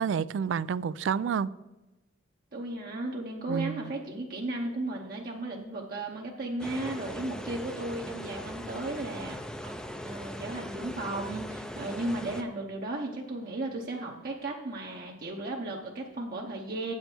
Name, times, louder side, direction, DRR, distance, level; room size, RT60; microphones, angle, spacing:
voice 1, 0.0-1.5 3.5-3.9 9.6-9.7, right 7 dB, 75° right, 0.3 m, -29 dB
voice 2, 2.5-16.9, right 2 dB, 50° right, 0.9 m, -35 dB
sound 1, 6.6-12.4, equal, 5° left, 0.5 m, -40 dB
8.8 x 7.3 x 4.4 m
head